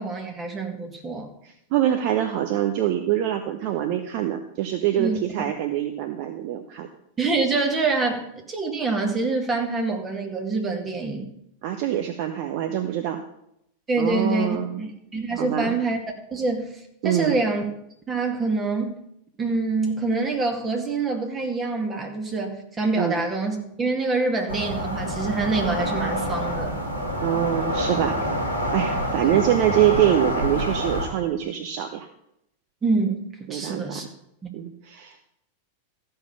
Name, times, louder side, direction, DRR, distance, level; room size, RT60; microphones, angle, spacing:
voice 1, 0.0-1.3 5.0-5.2 7.2-11.3 13.9-16.0 16.3-17.6 18.1-19.0 19.4-26.8 32.8-34.1 34.4-34.5, right 3 dB, 20° right, 3 dB, 2.2 m, -26 dB
voice 2, 1.4-6.9 11.6-13.2 14.0-14.8 15.4-15.7 17.0-17.4 23.0-23.2 27.2-28.3 28.7-32.1 33.5-34.0 34.5-35.1, right 11 dB, 45° right, 7 dB, 0.9 m, -24 dB
sound 1, 24.5-31.1, equal, 75° right, 2.7 m, -27 dB
14.0 x 5.6 x 7.0 m, 0.77 s
figure-of-eight pair, 90°, 0 cm